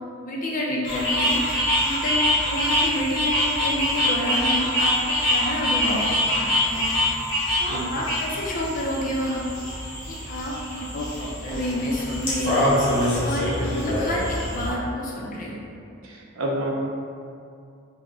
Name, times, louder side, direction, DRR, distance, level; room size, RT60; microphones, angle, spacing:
voice 1, 0.2-6.9 7.6-9.5 10.1-12.7 13.2-15.6, left 1 dB, 35° left, -3 dB, 0.5 m, -29 dB
sound 1, 0.8-14.7, left 1 dB, 20° left, 0.9 m, -24 dB
voice 2, 7.7-8.0 16.0-16.7, right 1 dB, 70° right, -2 dB, 0.5 m, -29 dB
3.7 x 2.1 x 3.6 m, 2.4 s
head